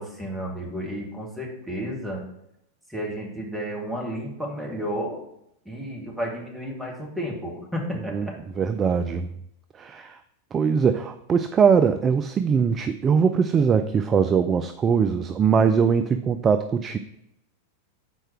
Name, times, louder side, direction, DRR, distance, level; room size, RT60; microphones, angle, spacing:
voice 1, 0.0-2.2 2.9-5.2 5.7-8.3 10.0-10.1, equal, 5° right, -1 dB, 2.0 m, -32 dB
voice 2, 8.6-9.3 9.8-10.2 10.5-17.0, right 6 dB, 25° right, 9 dB, 0.4 m, -21 dB
6.2 x 4.5 x 5.8 m, 0.79 s
figure-of-eight pair, 90°, 0 cm